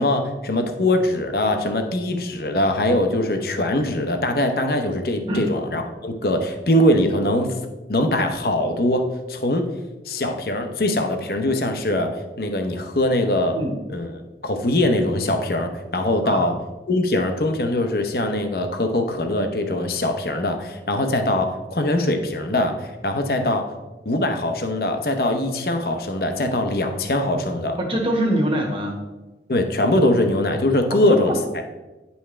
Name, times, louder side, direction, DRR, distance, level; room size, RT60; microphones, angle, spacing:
voice 1, 0.0-7.5 7.9-9.7 10.1-12.1 12.4-13.6 13.9-14.1 14.4-16.5 16.9-23.6 24.0-27.8 29.5-31.3, left 1 dB, 60° left, 6 dB, 0.8 m, -22 dB
voice 2, 27.8-29.0 30.9-31.4, right 1 dB, 30° right, 2 dB, 1.3 m, -24 dB
9.8 x 5.6 x 3.3 m, 1.1 s
head